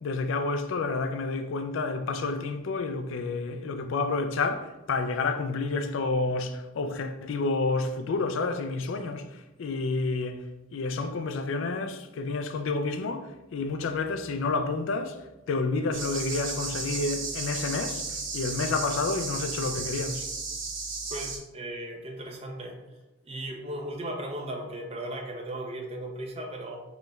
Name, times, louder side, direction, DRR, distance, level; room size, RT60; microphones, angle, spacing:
voice 1, 0.0-10.4 10.7-15.2 15.5-20.3, left 3 dB, 70° left, 0.4 m, -29 dB
sound 1, 15.9-21.4, right 4 dB, 70° right, 0.8 m, -34 dB
voice 2, 21.1-22.8 23.2-26.8, right 1 dB, 30° right, 0.5 m, -36 dB
5.3 x 3.0 x 2.3 m
head